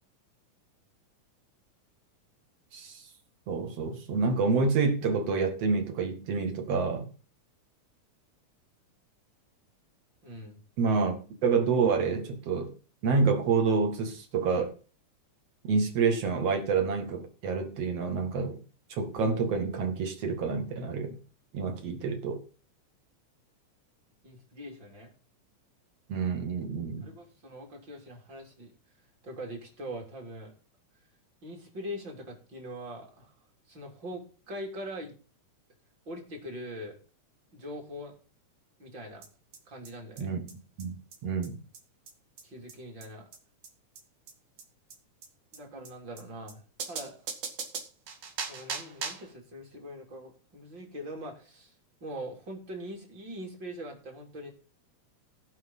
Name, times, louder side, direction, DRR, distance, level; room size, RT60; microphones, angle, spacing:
voice 1, 3.5-7.1 10.8-11.1 11.4-12.7 13.0-14.7 15.6-18.6 18.9-21.2 21.5-22.4 26.1-27.1 40.2-40.4 40.8-41.0 41.2-41.6, right 4 dB, 55° right, 2.9 m, -28 dB
voice 2, 10.2-10.6 24.2-25.1 27.0-28.7 29.2-30.5 31.4-33.3 33.7-35.1 36.1-37.0 37.5-38.1 38.8-39.2 39.7-40.3 42.4-43.3 45.5-47.2 48.5-51.7 52.0-54.5, equal, 35° right, 3.8 m, -42 dB
sound 1, 39.2-39.3 39.5-39.6 39.9-40.0 40.2-40.3 40.5-40.6 40.8-40.9 41.1-41.2 41.4-41.5 41.7-41.8 42.1-42.2 42.4-42.5 42.7-42.8 43.0-43.1 43.3-43.4 43.6-43.7 44.0-44.1 44.3-44.4 44.6-44.7 44.9-45.0 45.2-45.3 45.5-45.6 45.9-46.0 46.2-46.3 46.5-46.6 46.8-49.3, right 6 dB, 75° right, 3.6 m, -38 dB
18.0 x 6.1 x 5.6 m
omnidirectional pair, 3.6 m